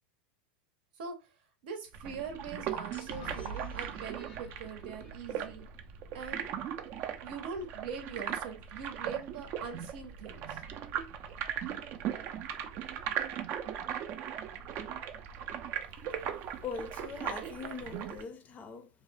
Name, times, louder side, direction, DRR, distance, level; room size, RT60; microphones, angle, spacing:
voice 1, 1.6-5.6 6.1-6.5 7.2-10.6, right 5 dB, 75° right, 0.7 m, -42 dB
sound 1, 1.9-18.2, right 9 dB, 45° right, 0.4 m, -38 dB
sound 2, 2.9-6.6, right 2 dB, 90° left, 1.1 m, -47 dB
voice 2, 16.0-18.9, left 5 dB, 30° left, 0.5 m, -42 dB
2.6 x 2.0 x 3.2 m
supercardioid pair, 125°, 5 cm